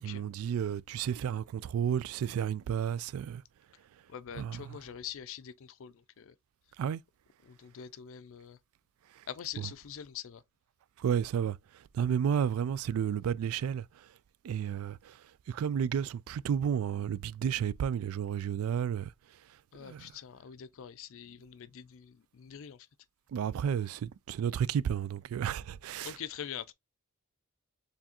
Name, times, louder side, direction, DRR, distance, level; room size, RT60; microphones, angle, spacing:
voice 1, 0.0-3.4 4.4-4.7 6.8-7.0 9.2-9.3 9.6-9.7 11.0-14.1 14.4-19.1 19.8-20.1 23.3-26.1, right 8 dB, 75° right, 0.3 m, -32 dB
voice 2, 4.1-6.4 7.4-8.6 9.3-10.4 19.7-22.9 26.0-26.7, left 9 dB, 65° left, 0.4 m, -44 dB
4.6 x 3.4 x 2.9 m
head